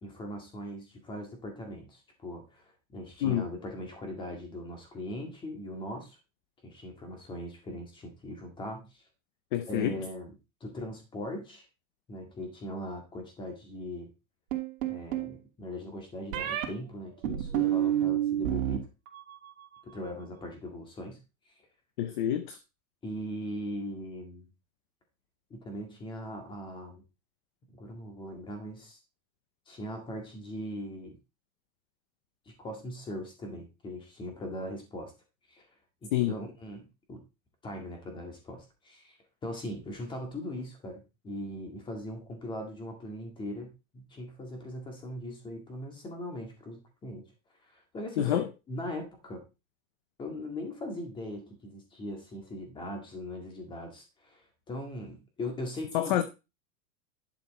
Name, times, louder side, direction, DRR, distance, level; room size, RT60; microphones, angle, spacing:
voice 1, 0.0-6.2 6.6-9.0 9.7-10.3 10.6-11.7 12.1-14.1 14.9-18.9 19.8-21.2 23.0-24.5 25.5-27.0 27.7-29.0 29.7-31.1 32.5-35.1 35.5-35.7 36.0-36.8 37.1-37.2 37.6-39.2 39.4-47.2 47.6-49.4 50.2-56.2, left 1 dB, 10° left, 2.0 m, -40 dB
voice 2, 9.5-10.0 22.0-22.6 36.1-36.3 48.2-48.5 55.9-56.2, left 12 dB, 35° left, 0.6 m, -27 dB
sound 1, 14.5-15.3 16.3-16.7 17.2-18.8 19.1-19.6, right 12 dB, 60° right, 2.8 m, -29 dB
11.0 x 6.3 x 4.2 m
supercardioid pair, 180°, 43 cm